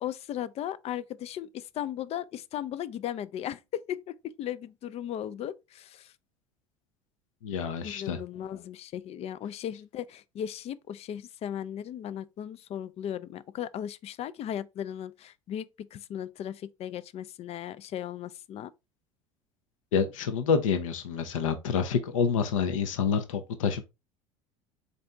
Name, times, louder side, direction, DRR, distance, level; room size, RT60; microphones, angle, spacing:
voice 1, 0.0-6.1 7.8-18.7, left 10 dB, 40° left, 0.4 m, -36 dB
voice 2, 7.4-8.2 19.9-23.8, left 6 dB, 80° left, 0.6 m, -27 dB
4.2 x 2.7 x 3.4 m
hypercardioid pair, 70°, 17 cm